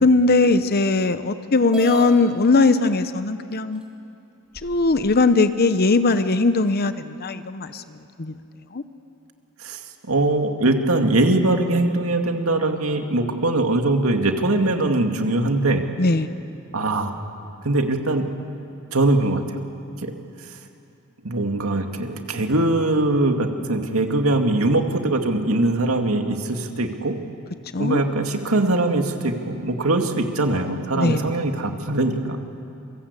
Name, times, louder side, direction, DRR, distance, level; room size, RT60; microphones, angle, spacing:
voice 1, 0.0-3.8 4.6-7.8 8.2-8.3 8.7-8.8 16.0-16.3 27.7-28.0 30.9-31.3, left 3 dB, 45° left, 11 dB, 0.8 m, -19 dB
sound 1, 1.7-2.1 3.1-3.2 3.8-3.9 4.5-5.2, equal, 5° right, 3.2 m, -36 dB
voice 2, 9.6-15.9 16.7-17.3 17.6-18.3 18.9-19.6 20.0-20.1 21.2-27.2 27.8-32.4, right 2 dB, 80° right, 4 dB, 2.3 m, -22 dB
28.0 x 24.0 x 8.4 m, 2.7 s
head